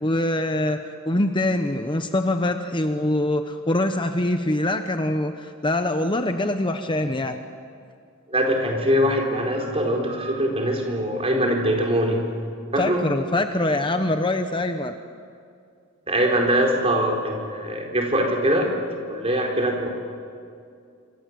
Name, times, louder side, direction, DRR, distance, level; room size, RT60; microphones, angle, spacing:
voice 1, 0.0-7.4 12.8-14.9, left 1 dB, 25° left, 7 dB, 1.0 m, -24 dB
voice 2, 8.3-12.2 12.7-13.0 16.1-18.7 19.1-19.9, equal, 30° right, 1 dB, 4.6 m, -22 dB
27.0 x 25.5 x 7.7 m, 2.4 s
head